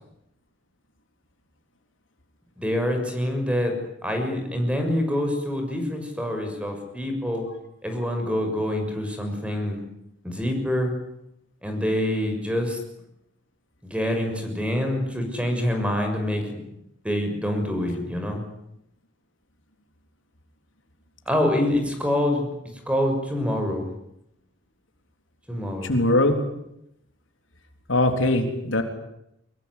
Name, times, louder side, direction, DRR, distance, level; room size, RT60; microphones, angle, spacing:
voice 1, 2.6-3.7 4.0-7.5 7.8-9.8 10.2-10.9 11.6-12.8 13.8-16.6 17.0-18.4 21.3-22.5 22.9-23.9 25.5-25.9, left 1 dB, 5° right, 5 dB, 6.5 m, -26 dB
voice 2, 25.8-26.4 27.9-28.8, left 1 dB, 80° left, 5 dB, 3.7 m, -21 dB
24.5 x 22.0 x 9.9 m, 0.80 s
head